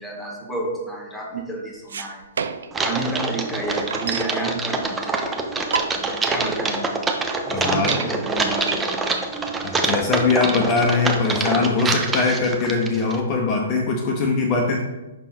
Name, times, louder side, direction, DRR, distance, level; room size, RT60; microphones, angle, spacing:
voice 1, 0.0-2.2 2.8-5.4 5.9-6.8 7.5-8.8, right 1 dB, 5° left, -1 dB, 1.5 m, -30 dB
sound 1, 1.7-2.8 3.2-3.3 3.5-4.4 5.1-5.2 5.6-6.2 6.7-6.8 7.0-7.1 7.5-8.1 8.6-11.5, right 6 dB, 65° right, 0.4 m, -30 dB
Typing, 2.7-13.2, right 3 dB, 10° right, 0.7 m, -25 dB
voice 2, 7.5-7.9 9.6-14.8, left 4 dB, 35° left, 1 dB, 0.7 m, -21 dB
6.0 x 3.6 x 4.4 m, 1.1 s
figure-of-eight pair, 115°, 0 cm